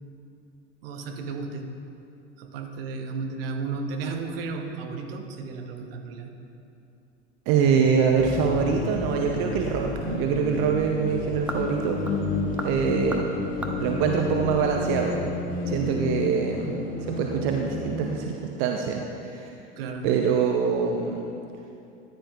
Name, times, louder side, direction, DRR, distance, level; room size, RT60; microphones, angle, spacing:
voice 1, 0.8-1.7 2.4-6.3 19.8-20.2, right 4 dB, 55° right, 3 dB, 1.1 m, -34 dB
voice 2, 7.5-12.0 12.3-13.3 13.8-15.2 15.7-16.7 17.1-18.3 18.6-19.5 20.0-21.2, right 6 dB, 40° right, 2 dB, 0.7 m, -24 dB
sound 1, 8.2-18.2, left 3 dB, 25° left, 1.2 m, -31 dB
sound 2, 9.4-15.2, right 1 dB, 5° right, 0.7 m, -41 dB
14.0 x 10.0 x 2.5 m, 2.7 s
figure-of-eight pair, 80°, 34 cm